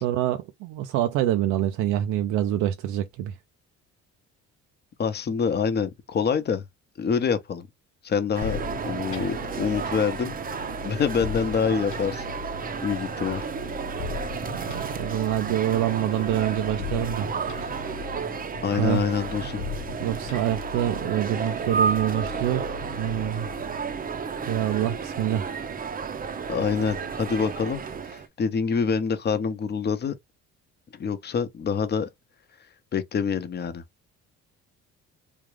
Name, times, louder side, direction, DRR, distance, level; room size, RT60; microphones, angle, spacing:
voice 1, 0.0-3.3 14.5-17.3 17.6-17.7 18.7-19.0 20.0-22.7 23.0-23.5 24.5-25.6, right 11 dB, 90° right, 0.5 m, -26 dB
voice 2, 5.0-6.6 7.0-7.7 8.0-10.4 10.8-12.2 12.8-13.4 18.6-19.6 26.5-30.1 31.0-32.1 32.9-33.8, left 6 dB, 35° left, 0.8 m, -26 dB
sound 1, 8.3-28.3, right 6 dB, 30° right, 0.6 m, -32 dB
sound 2, 8.4-24.0, left 6 dB, 75° left, 1.1 m, -39 dB
3.6 x 2.4 x 3.1 m
cardioid pair, 105°, 29 cm